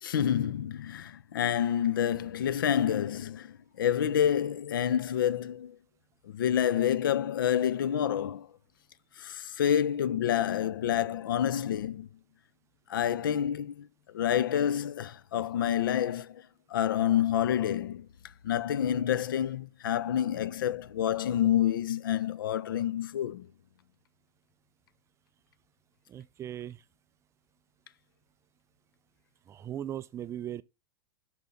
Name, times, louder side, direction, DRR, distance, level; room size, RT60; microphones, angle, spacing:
voice 1, 0.0-5.8 6.2-8.5 9.2-12.1 12.9-13.9 14.1-16.4 16.7-18.1 18.4-23.5, left 10 dB, 65° left, 0.5 m, -28 dB
voice 2, 26.1-26.8 29.5-30.6, right 11 dB, 25° right, 0.4 m, -38 dB
6.1 x 5.6 x 3.8 m
figure-of-eight pair, 90°, 12 cm